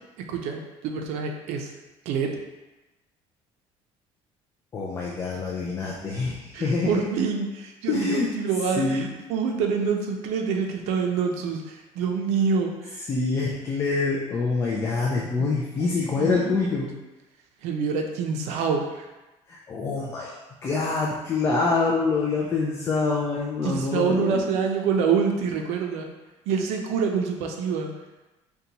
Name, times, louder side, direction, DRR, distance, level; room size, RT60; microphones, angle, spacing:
voice 1, 0.3-1.7 2.1-2.4 6.5-13.1 15.2-15.9 16.2-16.7 17.6-19.1 23.6-26.1 26.5-27.9, right 5 dB, 80° right, 3 dB, 0.5 m, -26 dB
voice 2, 4.7-7.0 7.9-8.3 8.8-9.1 13.1-16.9 19.5-20.3 20.6-24.5, left 4 dB, 20° left, -4 dB, 0.3 m, -25 dB
3.9 x 2.2 x 2.8 m, 1.1 s
cardioid pair, 170°, 11 cm